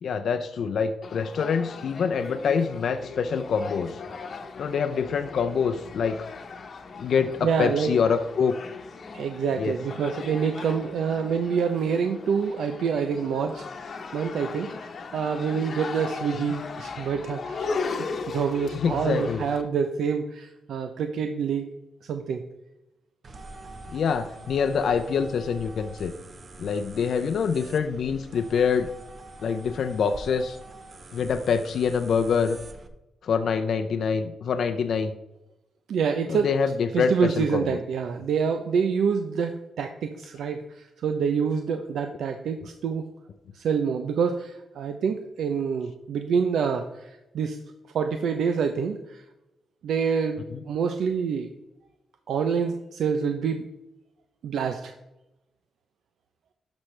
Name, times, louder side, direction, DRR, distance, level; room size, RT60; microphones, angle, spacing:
voice 1, 0.0-4.0 4.6-6.2 7.0-8.6 9.6-9.8 16.4-16.5 18.7-19.4 23.9-26.1 26.6-28.9 29.4-30.6 31.1-32.6 33.2-35.1 36.3-37.8, left 6 dB, 65° left, 7 dB, 0.5 m, -25 dB
sound 1, 1.0-19.6, left 4 dB, 50° left, 1.0 m, -38 dB
voice 2, 7.4-7.9 9.1-17.8 18.3-21.7 22.0-22.4 35.9-36.5 36.9-43.0 43.5-47.6 47.9-49.2 49.8-51.5 52.3-53.6 54.4-54.9, right 6 dB, 80° right, 6 dB, 0.6 m, -27 dB
sound 2, 23.2-32.9, right 2 dB, 40° right, 1.0 m, -44 dB
11.5 x 6.2 x 3.3 m, 0.93 s
cardioid pair, 110°, 0 cm